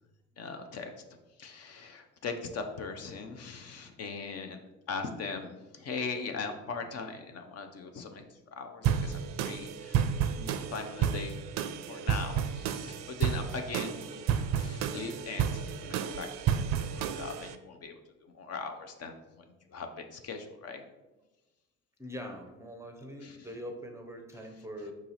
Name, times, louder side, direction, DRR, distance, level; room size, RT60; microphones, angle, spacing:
voice 1, 0.4-0.9 1.4-4.6 4.9-10.1 10.4-11.4 11.9-19.1 19.7-20.8 23.2-23.5, left 4 dB, 45° left, 6 dB, 0.6 m, -40 dB
sound 1, 8.8-17.5, right 8 dB, 50° right, 0.4 m, -31 dB
voice 2, 22.0-24.9, equal, 10° right, 3 dB, 0.6 m, -43 dB
4.9 x 2.8 x 3.9 m, 1.1 s
supercardioid pair, 75°, 35 cm